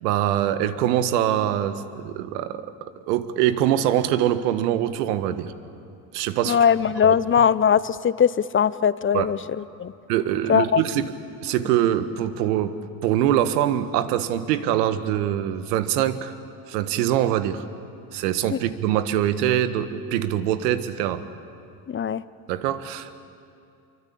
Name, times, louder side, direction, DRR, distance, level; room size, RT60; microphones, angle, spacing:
voice 1, 0.0-2.7 3.1-5.5 6.1-6.6 7.1-7.2 9.1-9.3 10.1-11.1 11.4-12.7 13.0-16.3 16.7-17.6 18.1-21.2 22.5-23.2, right 11 dB, 85° right, 12 dB, 1.5 m, -23 dB
voice 2, 6.4-9.9 10.5-10.8 18.5-18.6 21.9-22.2, left 8 dB, 25° left, 17 dB, 0.8 m, -20 dB
26.5 x 23.5 x 8.6 m, 2.5 s
supercardioid pair, 80°, 46 cm